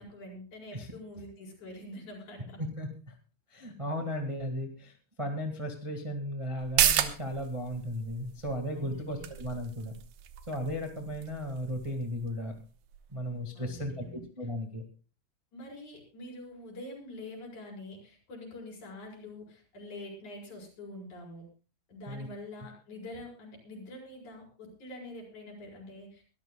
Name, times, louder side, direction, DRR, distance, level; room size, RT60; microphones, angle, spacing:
voice 1, 0.0-2.6 8.8-9.3 13.5-14.2 15.5-21.5 21.9-26.2, left 1 dB, 60° left, 0 dB, 6.0 m, -45 dB
voice 2, 2.6-3.1 3.5-9.9 10.5-12.5 13.1-14.8 22.1-22.3, equal, 50° right, 3 dB, 0.3 m, -35 dB
sound 1, 6.6-13.7 14.1-14.2, right 11 dB, 80° right, 2.6 m, -34 dB
23.0 x 13.5 x 2.2 m, 0.35 s
omnidirectional pair, 4.0 m